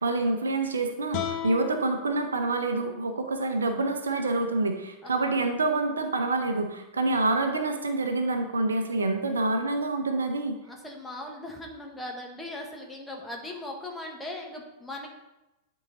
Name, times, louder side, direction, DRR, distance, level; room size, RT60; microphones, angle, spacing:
voice 1, 0.0-10.6, right 2 dB, 75° right, 6 dB, 0.7 m, -27 dB
sound 1, 1.1-4.3, left 9 dB, 45° left, 1.1 m, -38 dB
voice 2, 10.6-15.1, left 1 dB, 10° left, 0 dB, 1.4 m, -39 dB
10.0 x 3.9 x 3.9 m, 0.99 s
figure-of-eight pair, 90°, 0 cm